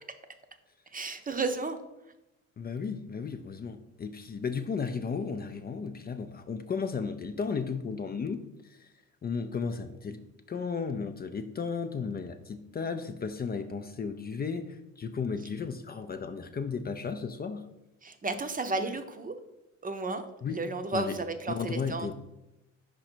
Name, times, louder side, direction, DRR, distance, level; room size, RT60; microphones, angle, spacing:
voice 1, 0.9-1.8 18.0-19.4 19.8-22.1, right 3 dB, 30° right, 7 dB, 0.7 m, -33 dB
voice 2, 2.6-8.9 9.2-10.2 10.5-17.7 20.4-20.6 20.9-21.1 21.5-22.1, left 5 dB, 30° left, 8 dB, 0.5 m, -34 dB
5.2 x 4.9 x 4.4 m, 0.93 s
cardioid pair, 90°, 30 cm